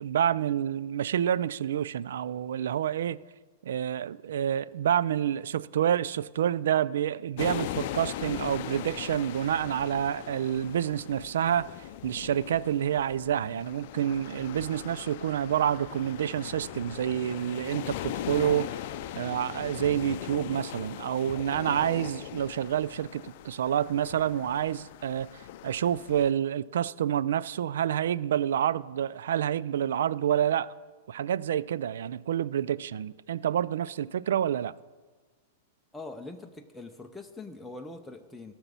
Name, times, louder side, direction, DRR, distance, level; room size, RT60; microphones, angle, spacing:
voice 1, 0.0-3.2 3.6-11.7 12.0-18.8 19.1-30.7 31.1-34.7, right 10 dB, 75° right, 0.3 m, -28 dB
sound 1, 7.4-26.3, left 12 dB, 55° left, 0.5 m, -40 dB
voice 2, 35.9-38.5, left 2 dB, 5° left, 0.7 m, -43 dB
13.5 x 6.0 x 6.8 m
hypercardioid pair, 120°, 0 cm